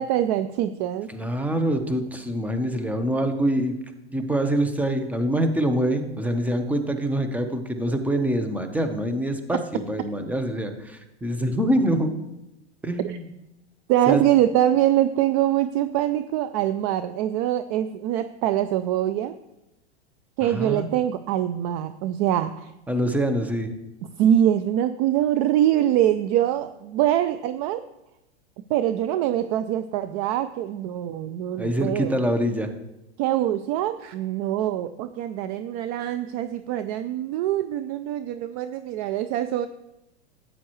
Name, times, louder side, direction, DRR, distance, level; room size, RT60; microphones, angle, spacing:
voice 1, 0.0-1.1 13.0-13.2 13.9-19.3 20.4-22.7 24.2-27.9 28.7-32.1 33.2-39.7, right 12 dB, 35° right, 12 dB, 0.4 m, -24 dB
voice 2, 1.1-3.7 4.1-12.1 12.8-13.3 14.1-14.2 20.4-20.9 22.9-23.7 31.6-32.7, right 1 dB, 5° right, 6 dB, 0.9 m, -25 dB
12.5 x 8.7 x 3.1 m, 0.92 s
hypercardioid pair, 120°, 34 cm